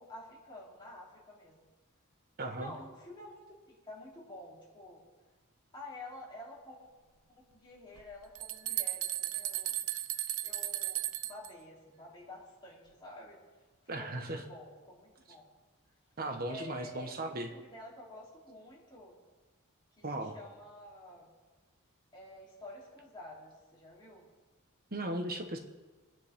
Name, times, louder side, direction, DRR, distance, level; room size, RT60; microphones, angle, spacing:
voice 1, 0.0-1.7 2.4-5.0 5.7-6.9 7.3-9.7 10.4-13.4 13.9-15.5 16.5-19.2 20.0-21.3 22.1-24.3, left 1 dB, 20° left, -5 dB, 3.3 m, -50 dB
voice 2, 2.4-2.7 13.9-14.4 16.2-17.5 20.0-20.3 24.9-25.6, right 1 dB, 45° right, 5 dB, 1.3 m, -37 dB
sound 1, 8.0-11.5, right 14 dB, 90° right, 0.5 m, -35 dB
21.0 x 9.7 x 3.7 m, 1.3 s
head